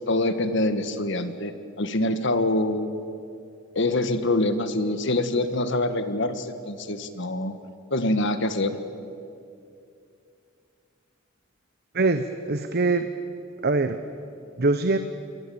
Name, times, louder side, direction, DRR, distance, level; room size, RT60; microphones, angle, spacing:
voice 1, 0.1-3.0 3.7-7.5 7.9-8.8, left 2 dB, 65° left, 10 dB, 1.7 m, -25 dB
voice 2, 11.9-13.1 13.6-14.0 14.6-15.0, right 3 dB, 55° right, 9 dB, 1.0 m, -23 dB
28.5 x 22.0 x 8.9 m, 2.6 s
head